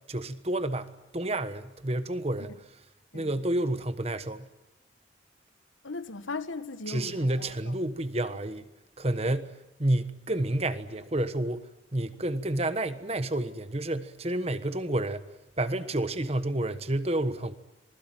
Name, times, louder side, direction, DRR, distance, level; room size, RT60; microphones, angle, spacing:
voice 1, 0.1-2.5 3.1-4.5 6.9-8.7 9.0-9.5 9.8-15.2 15.6-17.6, right 1 dB, 30° right, 1.2 m, -30 dB
voice 2, 5.8-7.8, left 3 dB, 80° left, 1.5 m, -38 dB
26.0 x 20.5 x 9.1 m
head